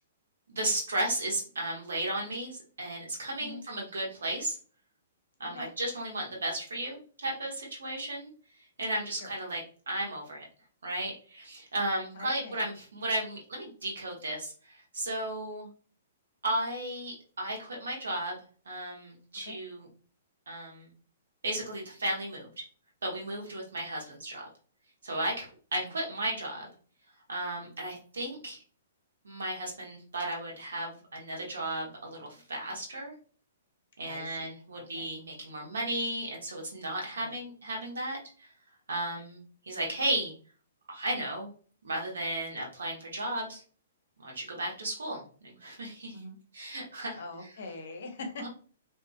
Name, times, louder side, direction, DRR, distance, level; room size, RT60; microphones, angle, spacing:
voice 1, 0.5-4.6 5.4-8.3 8.8-9.6 9.9-10.4 10.8-15.7 16.4-18.4 18.7-19.9 20.5-20.9 21.4-22.5 23.0-24.4 25.0-26.7 27.3-28.6 29.2-33.1 34.0-38.2 38.9-40.3 40.9-41.5 41.8-43.6 44.2-46.2 46.5-47.2 48.4-48.5, right 1 dB, 65° right, -1 dB, 1.1 m, -34 dB
voice 2, 12.1-12.7 19.4-19.6 25.7-25.9 34.0-35.1 37.1-37.4 46.1-46.4 47.1-48.5, left 3 dB, 55° left, 3 dB, 0.6 m, -43 dB
2.7 x 2.4 x 2.3 m, 0.41 s
figure-of-eight pair, 115°, 0 cm